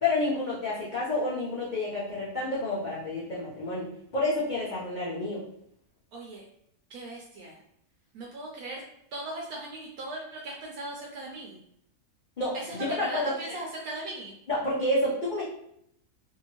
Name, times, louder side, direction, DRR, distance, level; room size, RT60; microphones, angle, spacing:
voice 1, 0.0-5.4 12.4-13.3 14.5-15.4, left 2 dB, 55° left, -7 dB, 0.5 m, -29 dB
voice 2, 6.1-6.4 6.9-7.6 8.1-8.8 9.1-11.6 12.5-14.3, right 2 dB, 75° right, -1 dB, 1.0 m, -38 dB
2.8 x 2.7 x 2.9 m, 0.73 s
omnidirectional pair, 1.6 m